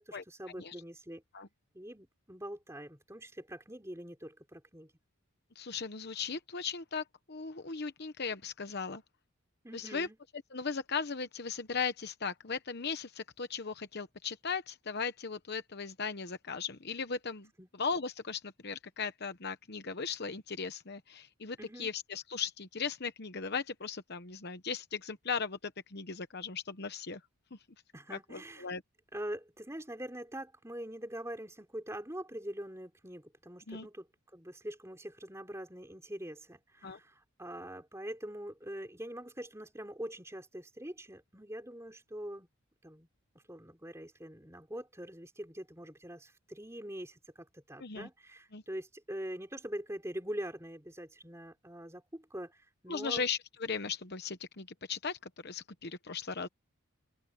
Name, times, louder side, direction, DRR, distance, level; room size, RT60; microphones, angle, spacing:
voice 1, 0.0-1.2 1.7-4.9 9.6-10.2 17.6-17.7 21.6-21.9 27.9-28.7 29.1-34.1 34.3-42.5 42.8-43.1 43.5-53.3, right 1 dB, 15° right, 4.2 m, -44 dB
voice 2, 5.6-9.0 9.7-10.1 10.5-17.5 17.8-27.2 28.1-28.8 33.7-33.9 36.8-37.0 47.8-48.1 48.5-48.6 52.9-56.5, left 5 dB, 50° left, 1.0 m, -37 dB
open air
head